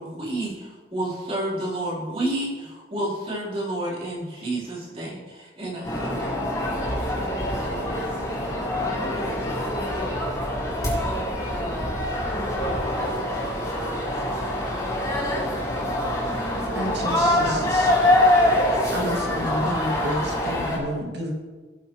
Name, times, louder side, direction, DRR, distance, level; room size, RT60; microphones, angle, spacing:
voice 1, 0.0-6.5, right 1 dB, 35° right, -7 dB, 3.9 m, -30 dB
sound 1, 5.8-20.8, left 1 dB, 20° left, 3.6 m, -24 dB
voice 2, 12.6-16.2, left 1 dB, 60° left, -5 dB, 3.5 m, -42 dB
voice 3, 16.7-17.9 18.9-21.3, equal, 80° right, -1 dB, 2.2 m, -30 dB
17.5 x 7.8 x 3.1 m, 1.4 s
head